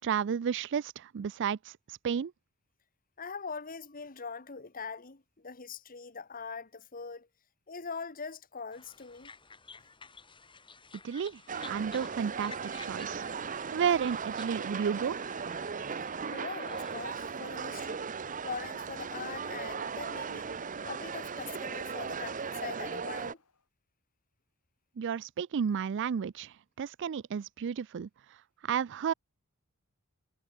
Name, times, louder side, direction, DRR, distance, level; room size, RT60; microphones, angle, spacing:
voice 1, 0.0-1.7 2.0-2.3 11.0-11.4 11.7-13.2 13.7-15.2 25.0-28.1 28.6-29.1, right 7 dB, 55° right, 0.4 m, -32 dB
voice 2, 3.2-7.3 7.7-9.3 16.3-18.1 18.4-20.6 20.8-23.4, left 5 dB, 40° left, 1.6 m, -42 dB
sound 1, 8.7-17.3, left 4 dB, 20° left, 7.3 m, -53 dB
sound 2, 11.5-23.3, right 6 dB, 35° right, 0.8 m, -37 dB
Train, 11.8-23.7, left 4 dB, 80° left, 3.8 m, -66 dB
head